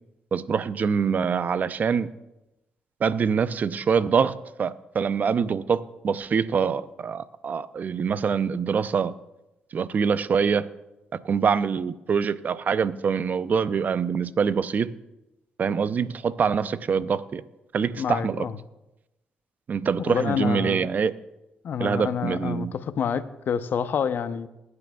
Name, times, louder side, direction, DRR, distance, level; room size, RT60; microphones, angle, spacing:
voice 1, 0.3-2.1 3.0-9.1 9.7-10.7 11.1-14.9 15.6-17.4 17.7-18.4 19.7-21.1 21.8-22.7, right 6 dB, 50° right, 15 dB, 0.6 m, -25 dB
voice 2, 18.0-18.6 20.0-20.9 21.6-24.5, left 7 dB, 60° left, 12 dB, 0.7 m, -28 dB
20.5 x 9.6 x 2.3 m, 0.94 s
supercardioid pair, 60°, 4 cm